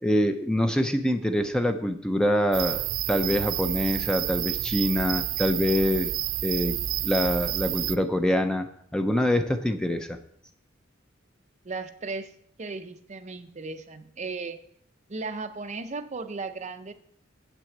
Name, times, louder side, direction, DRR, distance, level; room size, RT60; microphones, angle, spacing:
voice 1, 0.0-6.1 6.4-6.8 7.0-8.7 8.9-10.2, left 1 dB, 5° left, 7 dB, 0.5 m, -25 dB
sound 1, 2.5-8.0, right 13 dB, 75° right, 0.4 m, -29 dB
voice 2, 11.6-12.3 12.6-14.6 15.1-16.9, right 3 dB, 35° right, 8 dB, 0.7 m, -36 dB
8.1 x 6.1 x 7.9 m, 0.66 s
head